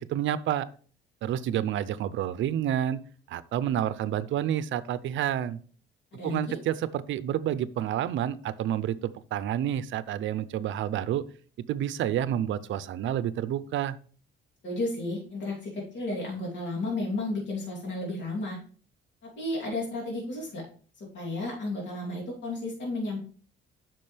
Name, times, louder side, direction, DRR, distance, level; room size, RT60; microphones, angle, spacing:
voice 1, 0.1-0.7 1.2-3.0 3.3-5.6 6.2-11.2 11.7-14.0, right 11 dB, 75° right, 16 dB, 0.5 m, -29 dB
voice 2, 6.1-6.6 14.6-18.6 19.2-20.6 21.0-23.2, left 2 dB, 65° left, -3 dB, 3.1 m, -33 dB
8.5 x 6.1 x 3.3 m, 0.43 s
cardioid pair, 90°, 20 cm